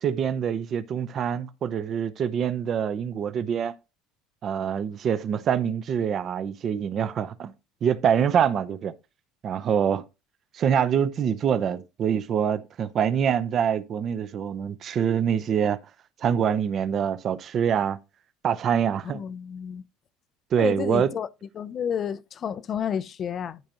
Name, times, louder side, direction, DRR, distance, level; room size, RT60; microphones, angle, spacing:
voice 1, 0.0-3.7 4.4-7.5 7.8-8.9 9.4-10.0 10.5-15.8 16.2-18.0 18.4-19.2 20.5-21.1, right 8 dB, 40° right, 0.7 m, -25 dB
voice 2, 19.1-19.8 20.6-21.3 21.6-23.6, left 8 dB, 35° left, 0.5 m, -30 dB
12.0 x 5.0 x 2.9 m
cardioid pair, 140°, 0 cm